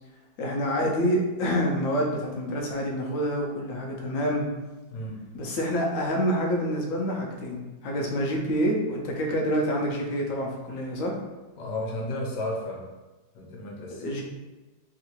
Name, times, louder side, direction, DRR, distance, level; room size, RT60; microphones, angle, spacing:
voice 1, 0.4-4.5 5.3-11.1 13.9-14.2, equal, 60° left, 0 dB, 0.9 m, -27 dB
voice 2, 11.6-12.8 13.3-14.0, left 1 dB, 80° left, -2 dB, 1.4 m, -33 dB
3.6 x 2.5 x 2.9 m, 1.2 s
omnidirectional pair, 1.8 m